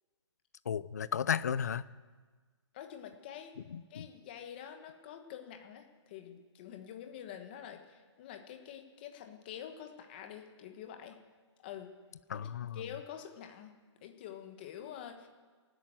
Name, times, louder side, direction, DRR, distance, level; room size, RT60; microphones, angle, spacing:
voice 1, 0.7-1.9 3.7-4.1 12.3-12.8, left 8 dB, 35° left, 17 dB, 0.4 m, -34 dB
voice 2, 2.7-3.6 3.9-11.2 11.6-11.9 12.3-12.5 12.7-13.7 14.0-15.3, left 9 dB, 20° left, 5 dB, 1.3 m, -47 dB
17.5 x 9.1 x 8.8 m, 1.4 s
hypercardioid pair, 175°, 15 cm